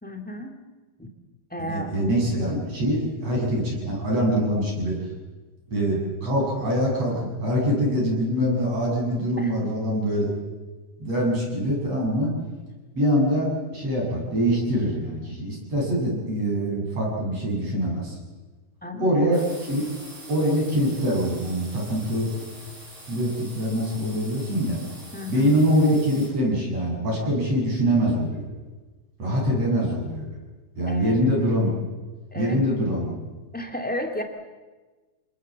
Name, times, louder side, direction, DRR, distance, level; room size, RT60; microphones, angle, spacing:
voice 1, 0.0-0.5 1.0-1.1 1.5-1.9 9.4-9.7 18.8-19.5 25.1-25.5 30.9-31.2 32.3-32.6 33.5-34.2, left 1 dB, 5° left, 4 dB, 0.8 m, -33 dB
voice 2, 1.7-5.0 5.7-10.3 11.0-12.3 12.9-18.2 19.0-19.9 20.3-22.4 23.1-24.8 25.3-28.4 29.2-30.2 30.8-31.7 32.3-33.1, equal, 40° right, -2 dB, 8.1 m, -24 dB
sound 1, 19.3-26.3, right 2 dB, 60° right, 9.7 m, -44 dB
28.0 x 20.5 x 7.5 m, 1.3 s
omnidirectional pair, 4.4 m